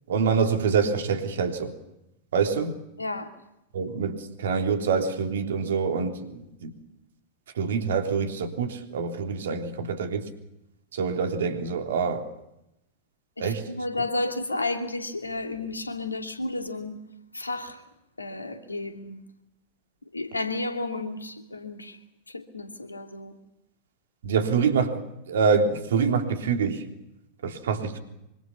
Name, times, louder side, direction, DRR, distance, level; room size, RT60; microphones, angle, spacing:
voice 1, 0.1-1.7 2.3-2.8 3.7-6.7 7.6-10.3 10.9-12.2 13.4-13.6 24.2-25.0 25.3-26.8 27.4-28.0, right 5 dB, 60° right, 3.5 m, -25 dB
voice 2, 3.0-3.3 13.4-17.0 17.3-17.8 18.2-19.2 20.1-22.0 22.3-23.4, left 2 dB, 80° left, 2.7 m, -32 dB
25.5 x 25.5 x 7.1 m
figure-of-eight pair, 90°, 0 cm